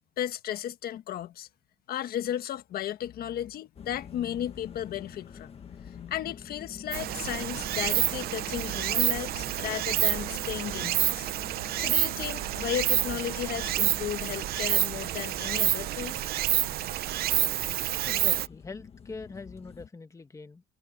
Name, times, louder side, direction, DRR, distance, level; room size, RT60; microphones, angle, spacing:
voice 1, 0.2-1.5 1.9-11.3 11.8-16.2, left 11 dB, 65° left, 1.5 m, -34 dB
sound 1, 3.8-19.9, left 6 dB, 35° left, 1.8 m, -47 dB
Stream, 6.9-18.5, right 14 dB, 65° right, 0.7 m, -28 dB
voice 2, 18.0-20.6, left 4 dB, 20° left, 1.6 m, -43 dB
cardioid pair, 110°, 17 cm